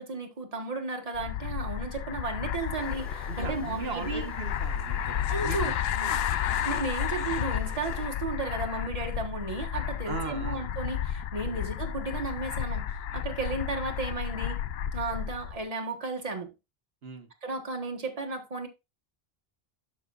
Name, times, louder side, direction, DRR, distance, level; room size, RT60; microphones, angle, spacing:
voice 1, 0.0-4.2 5.3-5.8 6.6-14.6 14.9-16.5 17.4-18.7, right 3 dB, 35° right, 1.5 m, -34 dB
sound 1, 1.1-15.6, left 9 dB, 75° left, 0.8 m, -32 dB
sound 2, 2.8-8.1, equal, ahead, 3.4 m, -52 dB
voice 2, 3.2-5.1 5.4-6.4 10.0-10.6 11.4-11.7 17.0-17.3, right 4 dB, 75° right, 1.4 m, -39 dB
12.0 x 5.8 x 2.5 m
omnidirectional pair, 1.0 m